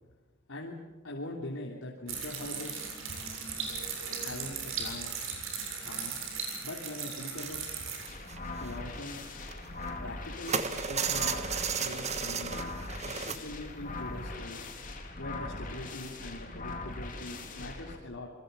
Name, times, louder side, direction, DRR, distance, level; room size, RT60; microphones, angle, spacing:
voice 1, 1.0-2.9 4.1-5.1 5.8-6.2 6.6-7.6 8.6-9.2 10.0-11.4 11.8-14.6 15.2-18.3, left 1 dB, 90° left, -2 dB, 3.3 m, -42 dB
sound 1, 2.1-8.1, right 5 dB, 80° right, 7.5 m, -37 dB
sound 2, 7.4-7.6 7.9-10.1 10.5-13.4 13.8-14.0 14.3-14.4, right 6 dB, 35° right, 1.4 m, -34 dB
sound 3, 8.1-18.0, left 2 dB, 40° left, 3.5 m, -41 dB
27.5 x 23.0 x 7.0 m, 1.2 s
head